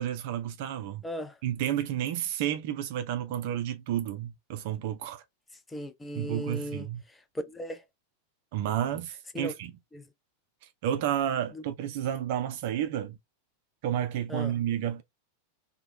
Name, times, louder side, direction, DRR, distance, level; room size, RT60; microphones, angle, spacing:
voice 1, 0.0-1.0 1.4-5.2 6.1-7.0 8.5-9.7 10.8-13.2 13.8-15.0, right 11 dB, 50° right, 0.4 m, -31 dB
voice 2, 1.0-1.3 5.7-6.9 7.5-7.8 9.3-9.5 9.9-10.1 11.5-11.6 14.3-14.5, equal, 10° left, 0.5 m, -37 dB
2.9 x 2.1 x 2.9 m
figure-of-eight pair, 90°, 0 cm